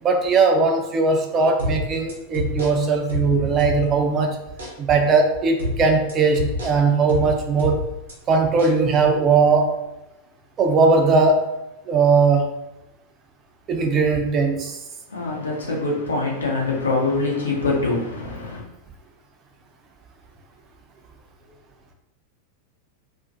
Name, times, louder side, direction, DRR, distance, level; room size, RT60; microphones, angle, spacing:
voice 1, 0.0-4.4 4.8-7.8 8.3-9.8 10.6-11.6 11.9-12.5 13.7-14.8, right 4 dB, 30° right, 0.4 m, -19 dB
sound 1, 1.6-4.1 4.6-4.8 5.6-8.1 8.6-8.8, left 1 dB, 70° right, 0.7 m, -28 dB
voice 2, 15.1-18.6, left 3 dB, 75° left, 0.7 m, -24 dB
2.4 x 2.0 x 2.6 m
figure-of-eight pair, 90°, 0 cm